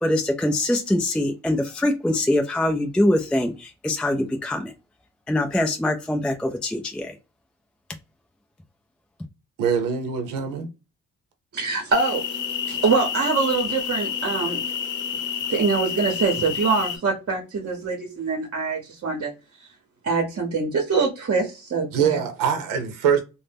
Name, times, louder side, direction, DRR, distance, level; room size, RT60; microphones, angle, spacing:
voice 1, 0.0-4.7 5.3-7.2, left 1 dB, 5° left, 0.3 m, -23 dB
voice 2, 9.6-10.7 21.9-23.2, right 7 dB, 90° right, 0.7 m, -23 dB
voice 3, 11.5-12.2 12.7-14.6 15.5-19.3 20.0-22.2, right 4 dB, 45° right, 0.8 m, -24 dB
sound 1, 11.9-17.0, left 8 dB, 65° left, 0.7 m, -29 dB
2.6 x 2.1 x 3.4 m
cardioid pair, 75°, 33 cm